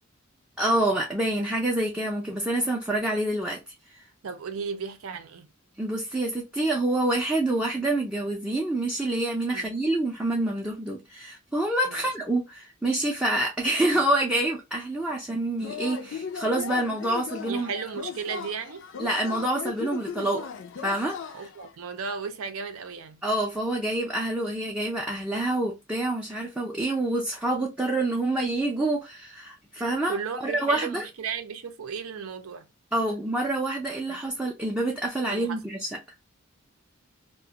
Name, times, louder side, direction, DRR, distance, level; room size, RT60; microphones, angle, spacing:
voice 1, 0.6-3.6 5.8-17.7 19.0-20.5 20.8-21.2 23.2-30.2 30.4-31.0 32.9-35.9, right 1 dB, 5° right, 0.4 m, -27 dB
voice 2, 4.2-5.5 9.5-9.7 11.9-12.1 13.9-14.0 17.5-18.8 21.3-23.2 30.1-32.7 34.1-34.2 35.3-35.6, right 6 dB, 80° right, 0.5 m, -35 dB
Yell / Cheering, 15.6-21.7, left 7 dB, 60° left, 0.4 m, -37 dB
2.4 x 2.2 x 2.7 m
head